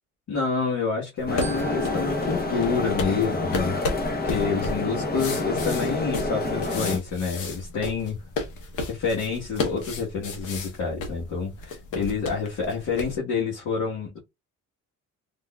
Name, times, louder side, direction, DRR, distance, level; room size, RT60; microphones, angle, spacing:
voice 1, 0.3-3.8 4.2-8.2 8.9-14.2, left 5 dB, 65° left, 1.3 m, -28 dB
sound 1, 1.2-13.2, left 3 dB, 85° left, 1.0 m, -34 dB
sound 2, 1.3-7.0, left 2 dB, 30° left, 0.8 m, -28 dB
Glockenspiel, 1.4-3.9, right 8 dB, 40° right, 0.8 m, -45 dB
3.6 x 2.6 x 2.2 m
cardioid pair, 90°, 30 cm